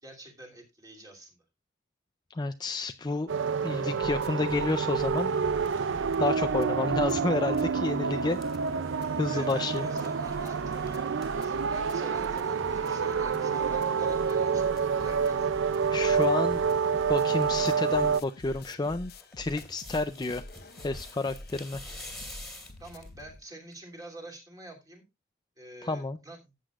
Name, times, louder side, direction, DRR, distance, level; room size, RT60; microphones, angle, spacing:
voice 1, 0.0-1.4 9.3-15.6 22.8-25.0 25.6-26.4, right 2 dB, 20° right, 1 dB, 2.8 m, -47 dB
voice 2, 2.3-3.3 3.6-5.3 6.2-8.4 9.2-9.9 15.9-16.6 17.1-19.1 19.4-20.4 20.8-21.8 25.8-26.2, left 3 dB, 20° left, 9 dB, 0.4 m, -30 dB
sound 1, 3.3-18.2, right 6 dB, 65° right, 0.5 m, -28 dB
sound 2, 4.0-7.1 7.6-7.7 8.3-23.4, left 1 dB, 50° left, 1.0 m, -47 dB
sound 3, 7.3-7.6 8.0-12.2 12.5-12.6 12.8-13.0 14.3-15.2 15.8-16.3 16.6-16.7 17.0-17.6 18.0-23.2 23.7-23.8, left 1 dB, ahead, 2.6 m, -49 dB
14.0 x 8.2 x 2.4 m, 0.23 s
head